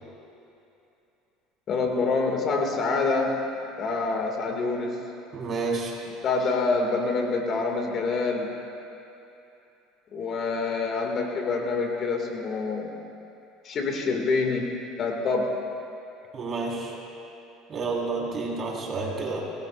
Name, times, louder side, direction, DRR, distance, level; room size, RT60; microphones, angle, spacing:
voice 1, 1.7-3.4 3.8-5.0 6.2-8.5 10.1-13.0 13.6-14.7 15.0-15.5, left 4 dB, 45° left, 1 dB, 2.2 m, -26 dB
voice 2, 5.3-6.0 16.3-17.0 17.7-19.4, right 3 dB, 40° right, -3 dB, 4.4 m, -30 dB
28.0 x 16.5 x 2.5 m, 2.8 s
supercardioid pair, 95°, 0 cm